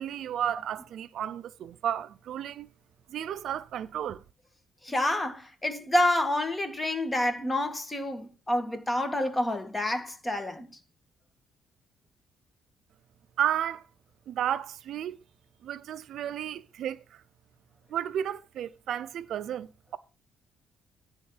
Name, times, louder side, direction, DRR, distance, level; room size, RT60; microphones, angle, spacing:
voice 1, 0.0-2.7 3.1-4.2 13.4-13.8 14.3-15.2 15.6-17.2 17.9-20.0, right 10 dB, 75° right, 0.5 m, -33 dB
voice 2, 4.8-10.7, left 1 dB, 15° left, 1.7 m, -28 dB
10.5 x 3.7 x 7.1 m
cardioid pair, 90°, 0 cm